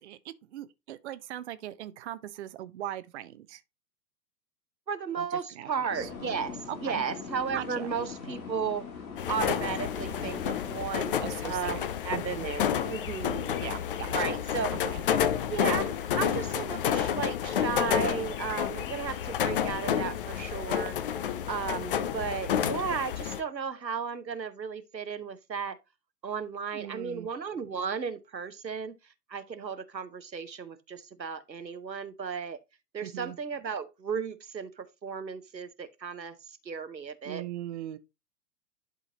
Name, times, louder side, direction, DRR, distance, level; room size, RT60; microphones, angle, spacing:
voice 1, 0.0-3.6 5.2-6.1 6.7-7.0 7.5-7.9 11.2-12.5 13.6-14.4 14.7-15.0 26.7-27.3 33.0-33.4 37.2-38.0, right 12 dB, 45° right, 0.6 m, -40 dB
voice 2, 4.9-8.9 9.3-13.6 14.1-14.7 15.5-21.0 21.5-25.8 26.2-28.9 29.3-32.6 32.9-37.4, right 6 dB, 90° right, 0.8 m, -34 dB
sound 1, 5.9-10.9, left 5 dB, 55° left, 2.1 m, -40 dB
sound 2, 9.2-23.4, left 9 dB, 35° left, 0.5 m, -30 dB
11.0 x 3.8 x 2.8 m
figure-of-eight pair, 105°, 50 cm